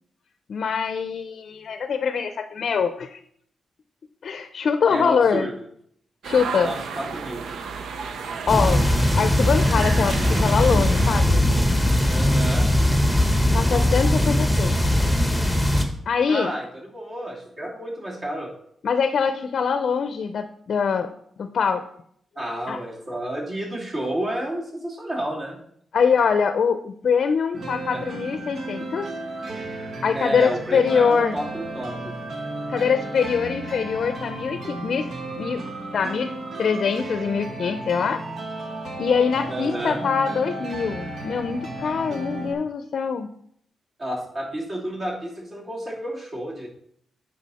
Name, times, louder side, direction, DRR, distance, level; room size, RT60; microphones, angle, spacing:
voice 1, 0.5-3.2 4.2-5.5 6.2-6.7 8.5-8.8 9.2-11.4 13.5-14.8 16.1-16.5 18.8-21.1 21.4-21.8 22.7-22.8 25.9-29.1 30.0-31.4 32.7-35.1 35.4-35.6 35.9-36.3 36.6-38.2 39.0-43.3, left 6 dB, 65° left, 9 dB, 0.5 m, -23 dB
voice 2, 4.9-5.5 6.6-7.4 12.1-12.7 16.3-16.7 16.9-18.5 22.3-25.6 27.9-28.0 30.1-32.2 39.5-40.1 44.0-46.7, right 1 dB, 40° right, -3 dB, 3.0 m, -30 dB
sound 1, 6.2-11.2, right 5 dB, 80° right, 0.7 m, -33 dB
sound 2, 8.5-15.9, left 1 dB, 5° right, 1.3 m, -20 dB
sound 3, 27.5-42.5, right 2 dB, 65° right, 1.4 m, -34 dB
9.1 x 5.8 x 4.2 m, 0.67 s
cardioid pair, 95°, 0 cm